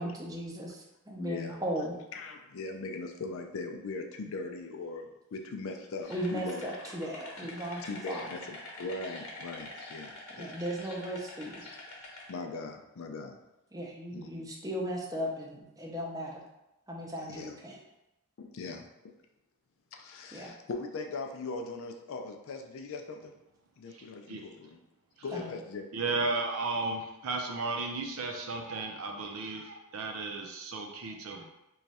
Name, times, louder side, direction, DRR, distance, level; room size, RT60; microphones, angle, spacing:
voice 1, 0.0-1.9 6.1-8.3 10.4-11.6 13.7-16.4 16.9-17.8 20.3-20.5 25.3-25.5, equal, 15° right, -1 dB, 0.6 m, -37 dB
voice 2, 1.2-1.6 2.1-6.7 7.8-10.5 12.3-13.4 14.1-14.3 17.3-17.5 18.4-18.8 19.9-23.3 23.8-24.8 25.2-25.9, left 3 dB, 65° left, 4 dB, 0.4 m, -40 dB
sound 1, 6.0-12.3, left 2 dB, 80° left, 1.0 m, -46 dB
voice 3, 23.9-24.4 25.9-31.5, right 3 dB, 70° right, 2 dB, 0.5 m, -34 dB
3.1 x 2.3 x 4.1 m, 0.91 s
head